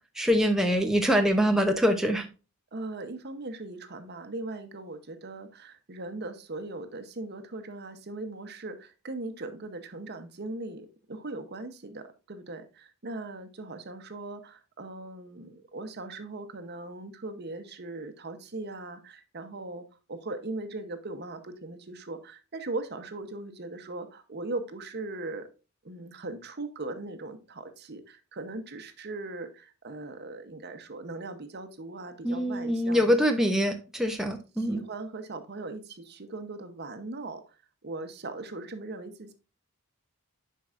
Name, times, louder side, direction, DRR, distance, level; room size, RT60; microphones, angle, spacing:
voice 1, 0.2-2.3 32.2-34.8, equal, ahead, 0.6 m, -24 dB
voice 2, 2.7-25.5 25.8-33.2 34.6-37.6 37.8-39.3, right 2 dB, 50° right, 0.8 m, -39 dB
10.5 x 4.6 x 2.5 m
head